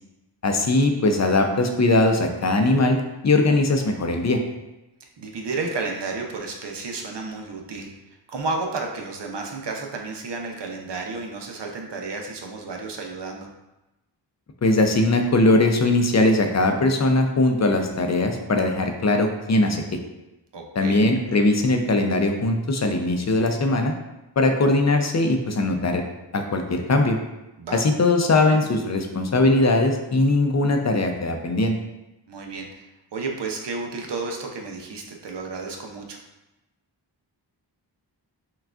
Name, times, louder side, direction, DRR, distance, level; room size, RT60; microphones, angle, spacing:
voice 1, 0.4-3.0 3.2-4.4 14.6-20.0 20.8-23.9 24.4-26.0 26.3-27.2 27.7-31.8, left 2 dB, 40° left, 4 dB, 0.5 m, -20 dB
voice 2, 5.2-13.5 20.5-21.1 27.6-27.9 32.3-32.9 33.1-36.2, right 3 dB, 70° right, 1 dB, 0.7 m, -32 dB
5.8 x 2.3 x 2.4 m, 0.97 s
cardioid pair, 55°, 44 cm